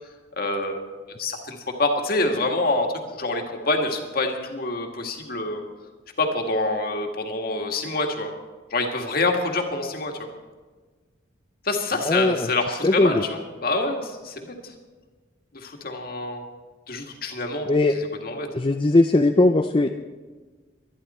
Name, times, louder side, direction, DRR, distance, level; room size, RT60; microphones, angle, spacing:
voice 1, 0.4-0.8 1.2-2.9 3.1-5.6 6.2-8.3 8.7-10.1 11.6-14.5 15.5-16.4 16.9-17.7 18.2-18.5, left 2 dB, 50° left, 3 dB, 1.9 m, -26 dB
voice 2, 12.0-13.2 17.7-17.9 18.5-19.9, left 2 dB, 25° left, 6 dB, 0.5 m, -19 dB
23.5 x 10.5 x 4.3 m, 1.4 s
head